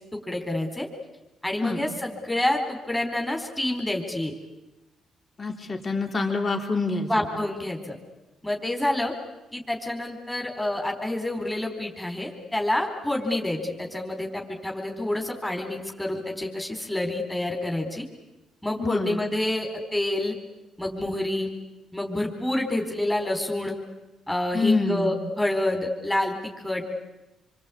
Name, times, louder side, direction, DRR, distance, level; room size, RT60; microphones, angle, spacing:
voice 1, 0.1-0.9 1.4-4.3 7.1-8.0 8.4-9.1 9.5-18.0 18.6-20.3 20.8-21.5 21.9-23.8 24.3-26.8, left 1 dB, 5° left, 2 dB, 4.2 m, -28 dB
voice 2, 5.4-7.3 18.8-19.2 24.5-25.2, left 3 dB, 35° left, 4 dB, 3.8 m, -26 dB
27.0 x 24.0 x 8.6 m, 1.0 s
cardioid pair, 90°, 0 cm